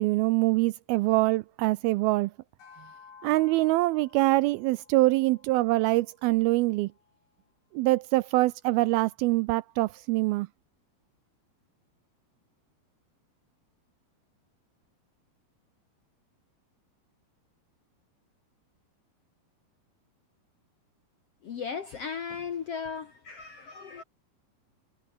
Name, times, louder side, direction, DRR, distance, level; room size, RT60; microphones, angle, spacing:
voice 1, 0.0-2.3 3.2-6.9 7.7-10.5, right 20 dB, 85° right, 2.2 m, -24 dB
sound 1, 2.6-7.2, left 6 dB, 85° left, 7.6 m, -55 dB
voice 2, 21.4-24.0, left 6 dB, 60° left, 1.6 m, -36 dB
omnidirectional pair, 4.7 m